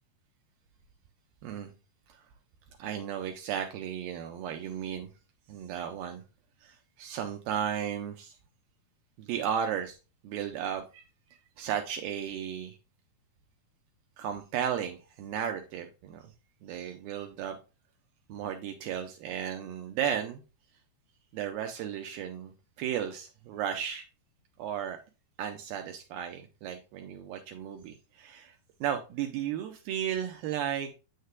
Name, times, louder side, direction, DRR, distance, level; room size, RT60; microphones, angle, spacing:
voice 1, 2.8-5.1 5.5-6.2 6.6-8.4 9.2-10.0 10.2-11.0 11.6-12.8 14.2-16.3 16.6-17.6 18.3-20.4 21.3-22.5 22.8-24.1 24.6-25.0 25.4-28.5 28.8-30.9, right 9 dB, 85° right, 2.2 m, -34 dB
8.0 x 6.5 x 2.2 m
omnidirectional pair, 4.7 m